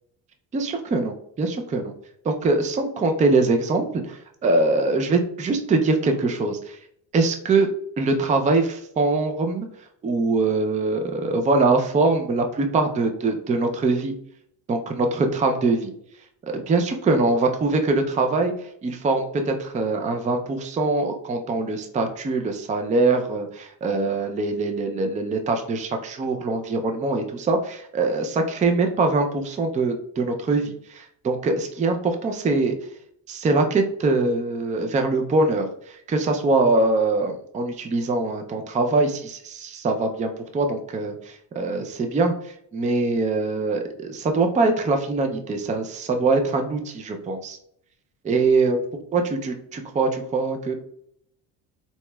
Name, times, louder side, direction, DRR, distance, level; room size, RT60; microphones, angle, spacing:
voice 1, 0.5-1.9 2.2-6.8 7.1-7.7 8.0-9.7 10.0-14.1 14.7-15.9 16.5-18.5 18.8-32.8 33.3-35.7 36.1-42.3 42.7-47.6 48.2-48.8 49.1-50.7, right 3 dB, 20° right, 5 dB, 0.4 m, -23 dB
4.1 x 2.8 x 2.2 m, 0.68 s
cardioid pair, 100°, 43 cm